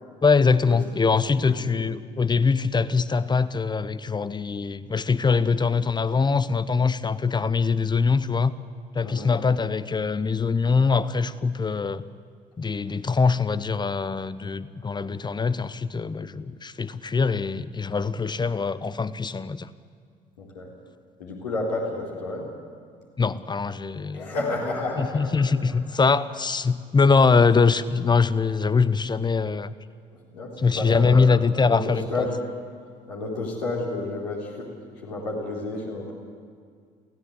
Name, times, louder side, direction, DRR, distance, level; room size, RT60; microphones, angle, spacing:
voice 1, 0.2-8.5 8.9-12.0 12.6-19.7 23.2-24.3 25.0-29.7 30.6-32.3, left 4 dB, 20° left, 16 dB, 0.9 m, -23 dB
voice 2, 1.4-1.8 9.0-9.4 20.4-20.7 21.2-22.5 24.1-25.4 30.3-32.4 33.1-34.7 35.0-36.1, left 2 dB, 75° left, -3 dB, 4.4 m, -31 dB
23.5 x 16.5 x 8.2 m, 2.1 s
figure-of-eight pair, 50°, 21 cm